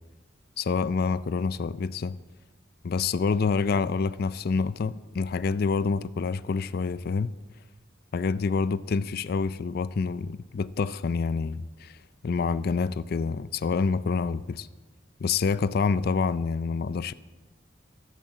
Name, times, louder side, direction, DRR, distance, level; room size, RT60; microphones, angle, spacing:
voice 1, 0.6-2.2 2.8-7.3 8.1-12.0 12.2-14.7 15.2-17.1, left 4 dB, 55° left, 0.4 m, -27 dB
12.5 x 11.0 x 7.5 m
head